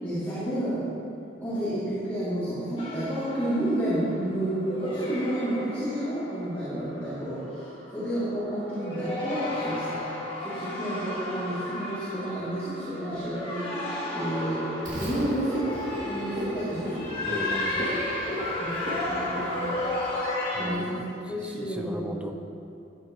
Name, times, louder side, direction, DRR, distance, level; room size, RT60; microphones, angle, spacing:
voice 1, 0.0-0.9 1.4-10.1 10.4-14.7 15.0-17.3 18.6-19.8 20.6-21.0 21.3-22.2, right 1 dB, 10° left, -14 dB, 2.7 m, -31 dB
sound 1, 2.8-4.1 4.6-7.1 7.6-7.9 8.7-20.7, left 1 dB, 30° left, 1.9 m, -33 dB
sound 2, 4.2-19.3, equal, 65° right, 1.9 m, -44 dB
Frog, 14.9-20.1, equal, 45° right, 2.7 m, -35 dB
voice 2, 17.2-18.0 20.5-20.9 21.2-22.3, right 1 dB, 5° right, 4 dB, 0.5 m, -38 dB
14.0 x 9.0 x 3.1 m, 2.7 s
head